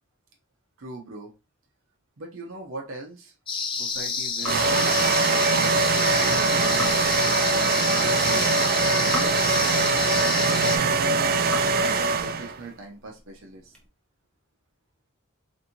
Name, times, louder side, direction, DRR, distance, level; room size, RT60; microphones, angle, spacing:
voice 1, 0.8-1.3 2.2-3.3 3.6-6.8 7.4-9.5 10.1-11.5 11.7-13.7, right 2 dB, 65° right, 1 dB, 0.7 m, -41 dB
sound 1, 3.5-10.8, left 5 dB, 25° left, 0.5 m, -29 dB
sound 2, 3.7-13.9, left 1 dB, 5° left, 0.9 m, -41 dB
sound 3, 4.4-12.6, right 4 dB, 45° right, 0.3 m, -22 dB
4.0 x 2.6 x 2.9 m, 0.29 s
head